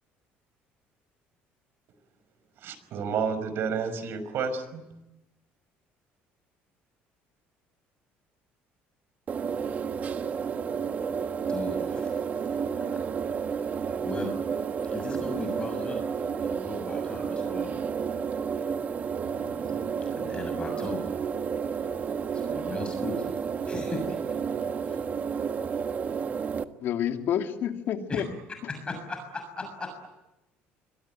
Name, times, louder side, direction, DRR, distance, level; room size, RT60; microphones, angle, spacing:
voice 1, 2.6-4.9, right 6 dB, 60° right, 12 dB, 5.5 m, -30 dB
sound 1, 9.3-26.6, right 6 dB, 40° right, 1.4 m, -31 dB
voice 2, 11.4-12.2 12.7-12.8 14.0-14.4 14.8-16.0 16.4-17.9 19.2-21.1 22.3-23.3 23.6-24.2 24.9-25.0 28.1-28.2 28.7-30.1, left 3 dB, 25° left, 5 dB, 6.6 m, -37 dB
voice 3, 26.8-28.3, left 9 dB, 60° left, 5 dB, 2.9 m, -29 dB
27.5 x 22.5 x 9.2 m, 0.96 s
cardioid pair, 120°, 4 cm